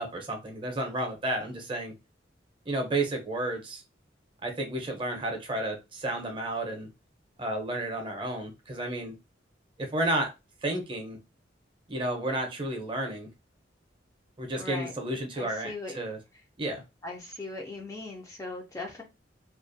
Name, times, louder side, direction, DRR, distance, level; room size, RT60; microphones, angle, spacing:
voice 1, 0.0-1.9 2.7-3.8 4.4-6.9 7.4-9.2 9.8-10.3 10.6-11.2 11.9-13.3 14.4-16.2 16.6-16.8, right 1 dB, 25° right, 3 dB, 0.6 m, -32 dB
voice 2, 14.6-14.9 15.4-16.0 17.0-19.0, left 2 dB, 15° left, 0 dB, 0.4 m, -39 dB
2.4 x 2.1 x 2.5 m, 0.25 s
head